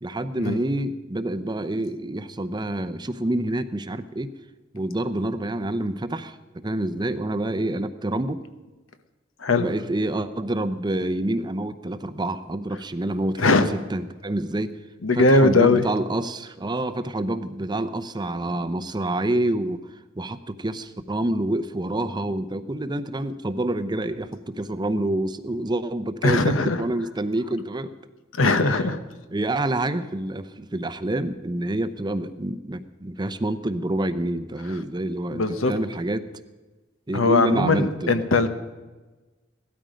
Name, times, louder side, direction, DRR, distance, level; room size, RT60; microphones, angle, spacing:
voice 1, 0.0-4.3 4.7-8.4 9.6-14.8 15.1-19.8 20.2-27.9 28.7-28.8 29.3-36.3 37.1-38.3, right 1 dB, 20° right, 12 dB, 0.6 m, -27 dB
voice 2, 15.0-15.9 26.2-26.8 28.4-29.0 35.3-35.7 37.1-38.5, left 3 dB, 80° left, 10 dB, 1.1 m, -20 dB
17.0 x 13.0 x 5.1 m, 1.2 s
head